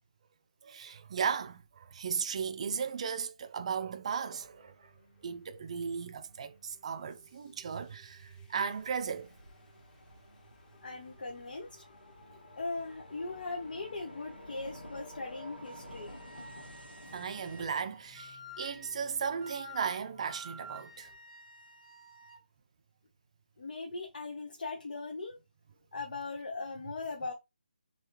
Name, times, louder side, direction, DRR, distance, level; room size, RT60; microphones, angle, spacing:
voice 1, 0.6-4.9 5.2-9.3 17.1-21.1, right 6 dB, 40° right, 0.4 m, -36 dB
sound 1, 4.4-21.2, left 2 dB, 20° left, 1.3 m, -63 dB
sound 2, 8.6-17.7, left 1 dB, 90° left, 0.9 m, -51 dB
voice 2, 10.8-11.8 12.6-16.2 23.6-25.4 25.9-27.3, left 3 dB, 60° left, 0.5 m, -39 dB
Wind instrument woodwind instrument, 16.1-22.4, equal, 40° left, 1.4 m, -51 dB
3.2 x 2.3 x 2.9 m
figure-of-eight pair, 150°, 5 cm